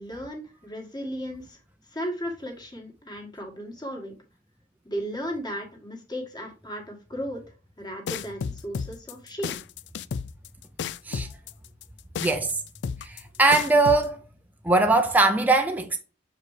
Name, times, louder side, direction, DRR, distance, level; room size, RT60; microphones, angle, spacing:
voice 1, 0.0-1.6 1.9-4.1 4.9-7.4 7.8-9.6, equal, 25° left, 1.7 m, -35 dB
sound 1, 8.1-14.1, left 6 dB, 75° left, 0.3 m, -32 dB
voice 2, 12.2-12.6 13.0-14.2 14.6-16.0, right 2 dB, 10° right, 0.5 m, -21 dB
6.8 x 4.7 x 3.2 m
head